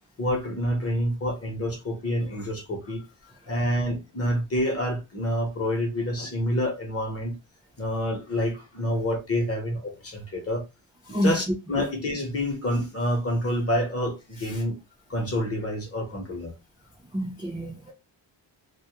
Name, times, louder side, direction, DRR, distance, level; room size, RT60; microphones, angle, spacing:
voice 1, 0.2-3.0 3.5-7.4 7.8-10.6 11.2-14.8 15.1-16.5, left 1 dB, 30° left, 0.8 m, -28 dB
voice 2, 17.1-17.9, equal, 10° right, 0.5 m, -28 dB
2.3 x 2.0 x 2.8 m
wide cardioid pair, 145°, 47 cm